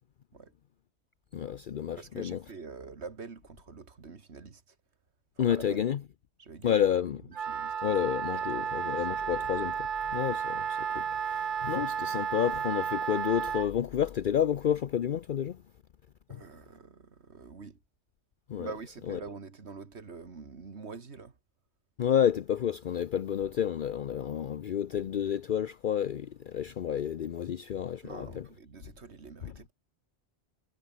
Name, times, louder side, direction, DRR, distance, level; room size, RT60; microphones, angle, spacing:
voice 1, 1.3-2.4 5.4-6.0 6.6-7.2 7.8-15.6 16.3-16.4 18.5-18.7 19.1-19.2 22.0-28.4 29.4-29.5, left 9 dB, 55° left, 0.7 m, -30 dB
voice 2, 2.0-4.8 5.4-5.9 6.4-6.8 7.1-7.9 8.3-9.1 16.3-17.8 18.6-21.4 28.0-29.7, right 4 dB, 90° right, 2.2 m, -46 dB
Wind instrument woodwind instrument, 7.3-13.7, right 7 dB, 50° right, 1.0 m, -32 dB
omnidirectional pair, 1.1 m